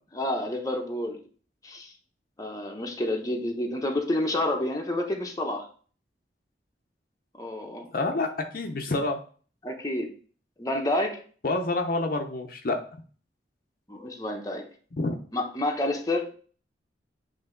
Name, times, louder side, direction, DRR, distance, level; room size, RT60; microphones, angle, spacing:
voice 1, 0.1-1.2 1.6-1.9 2.4-5.7 7.4-7.9 9.6-10.1 10.6-11.2 13.9-14.7 15.3-16.3, left 1 dB, 20° left, 2 dB, 0.9 m, -29 dB
voice 2, 7.9-9.2 11.4-12.8 15.0-15.2, left 2 dB, 55° left, 4 dB, 0.7 m, -28 dB
7.8 x 3.3 x 3.8 m, 0.41 s
head